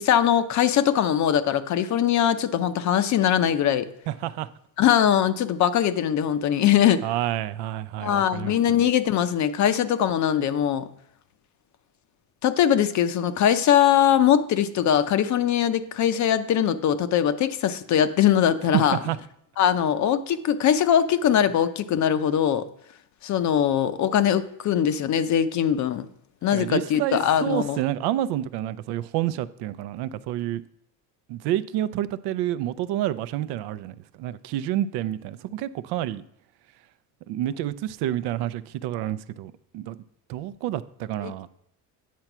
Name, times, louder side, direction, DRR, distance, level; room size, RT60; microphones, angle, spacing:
voice 1, 0.0-3.9 4.8-7.0 8.0-10.9 12.4-19.0 19.6-22.7 23.2-26.1 26.4-27.8 41.2-41.5, left 9 dB, 45° left, 0.6 m, -21 dB
voice 2, 4.1-4.5 7.0-8.8 18.7-19.2 26.5-30.6 31.3-36.2 37.3-40.0 40.3-41.5, right 13 dB, 70° right, 0.6 m, -29 dB
9.3 x 4.4 x 6.0 m
cardioid pair, 130°, 41 cm